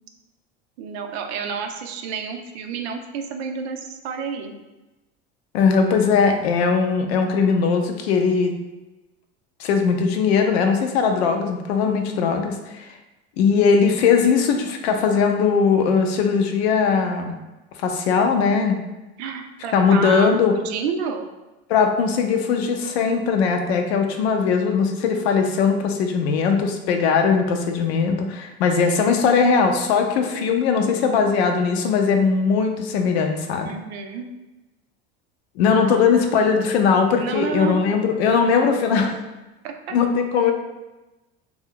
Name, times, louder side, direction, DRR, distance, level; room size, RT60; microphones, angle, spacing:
voice 1, 0.8-4.5 19.2-21.3 33.6-34.3 35.8-36.3 37.2-37.8 39.6-40.0, right 6 dB, 80° right, 5 dB, 0.5 m, -30 dB
voice 2, 5.5-8.5 9.6-12.9 13.4-17.4 17.8-18.8 19.7-20.5 21.7-33.7 35.6-39.1 39.9-40.5, left 5 dB, 85° left, 4 dB, 0.5 m, -19 dB
2.6 x 2.2 x 3.6 m, 1.0 s
supercardioid pair, 95°, 31 cm